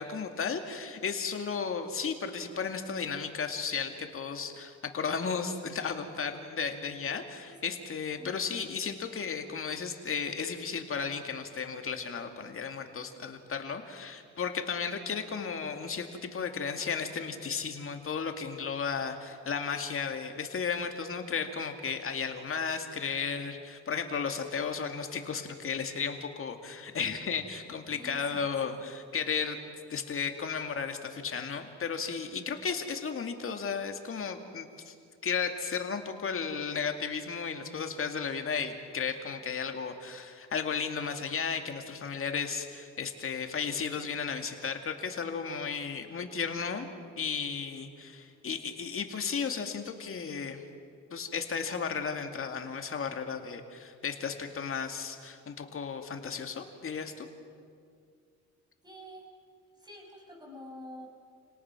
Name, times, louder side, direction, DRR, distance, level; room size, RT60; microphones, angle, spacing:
voice 1, 0.0-34.9 35.2-46.9 47.2-50.6 51.1-57.3, left 6 dB, 45° left, 5 dB, 2.3 m, -34 dB
voice 2, 27.6-28.8 58.8-59.3 59.7-61.1, left 1 dB, 15° right, 0 dB, 6.4 m, -48 dB
30.0 x 18.5 x 6.0 m, 2.3 s
cardioid pair, 90°, 30 cm